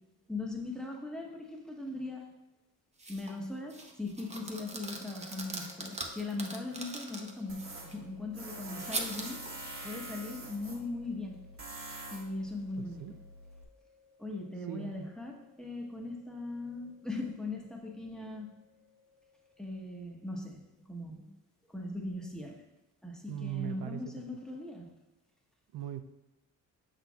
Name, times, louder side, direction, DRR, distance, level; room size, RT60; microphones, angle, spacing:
voice 1, 0.3-2.2 3.1-9.4 9.8-11.4 12.1-13.1 14.2-18.5 19.6-21.3 21.7-22.6 23.0-24.9, left 2 dB, ahead, 0 dB, 1.0 m, -39 dB
sound 1, 3.0-3.4 3.7-8.0 8.9-9.5, right 2 dB, 20° right, 0.8 m, -41 dB
sound 2, 4.6-20.1, left 4 dB, 45° left, 1.5 m, -63 dB
Tools, 7.5-13.6, right 1 dB, 40° right, 1.2 m, -46 dB
voice 2, 12.7-13.2 14.7-15.1 23.3-24.3 25.7-26.0, right 12 dB, 80° right, 9 dB, 0.5 m, -40 dB
6.6 x 6.1 x 2.4 m, 1.0 s
cardioid pair, 105°, 34 cm